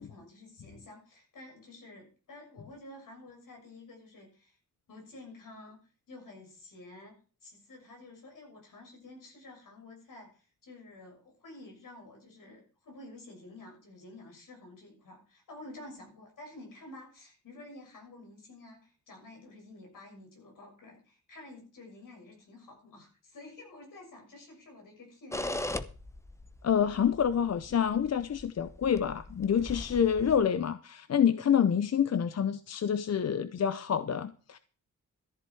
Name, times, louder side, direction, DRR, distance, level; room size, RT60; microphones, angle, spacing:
voice 1, 0.0-4.6 4.9-5.8 6.1-25.7, left 2 dB, 75° left, 6.9 m, -50 dB
sound 1, 25.3-30.4, left 1 dB, 10° left, 0.8 m, -40 dB
voice 2, 26.6-34.6, left 8 dB, 50° left, 0.7 m, -27 dB
14.0 x 10.5 x 4.8 m
wide cardioid pair, 125°, 32 cm